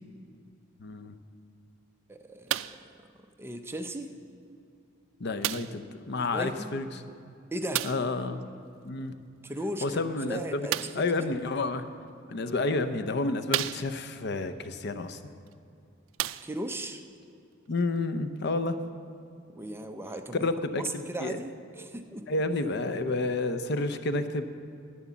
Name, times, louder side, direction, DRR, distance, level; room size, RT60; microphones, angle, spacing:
voice 1, 0.8-1.1 5.2-6.9 7.8-8.4 8.8-9.1 9.8-10.7 10.9-11.8 12.3-15.2 17.7-18.8 20.3-21.4 22.3-24.5, left 2 dB, 60° left, 10 dB, 0.7 m, -30 dB
voice 2, 2.1-3.1 3.4-4.2 6.2-6.7 7.5-7.9 9.4-11.3 16.4-17.0 19.5-20.5 20.7-22.3, right 1 dB, 10° right, 6 dB, 0.6 m, -37 dB
sound 1, 2.5-2.9 3.8-3.9 5.4-5.9 7.7-8.1 10.7-11.1 12.1-12.2 12.8-12.9 13.5-14.2 15.5-15.6 16.1-16.8 17.7-17.8, right 13 dB, 80° right, 0.3 m, -32 dB
10.5 x 10.0 x 7.2 m, 2.5 s
head